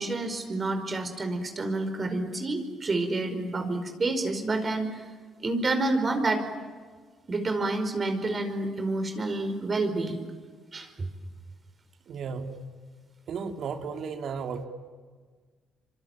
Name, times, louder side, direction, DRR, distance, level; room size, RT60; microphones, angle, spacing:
voice 1, 0.0-5.0 5.4-6.4 7.3-10.2 10.7-11.1, right 2 dB, 35° right, 7 dB, 5.1 m, -29 dB
voice 2, 12.1-12.6 13.3-14.6, right 5 dB, 65° right, 5 dB, 3.2 m, -34 dB
26.0 x 25.0 x 9.1 m, 1.5 s
cardioid pair, 75°, 0 cm